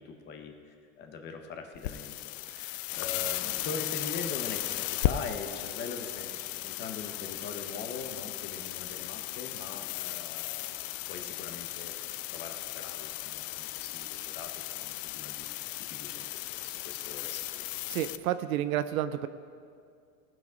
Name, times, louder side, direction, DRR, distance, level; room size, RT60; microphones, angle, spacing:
voice 1, 0.0-12.0 12.3-17.7, left 4 dB, 25° left, 5 dB, 0.9 m, -42 dB
sound 1, 1.8-18.2, left 15 dB, 70° left, 0.6 m, -36 dB
voice 2, 17.9-19.3, right 12 dB, 85° right, 12 dB, 0.7 m, -30 dB
18.0 x 6.1 x 5.1 m, 2.3 s
supercardioid pair, 155°, 40 cm